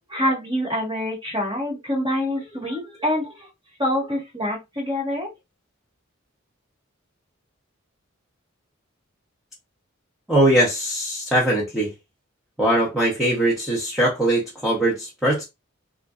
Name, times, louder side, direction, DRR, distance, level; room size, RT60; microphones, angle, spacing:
voice 1, 0.1-3.5 3.8-5.3, left 1 dB, 25° right, 1.6 m, -26 dB
voice 2, 10.3-11.9 12.6-15.4, right 1 dB, ahead, 0.8 m, -21 dB
3.6 x 2.6 x 2.4 m
head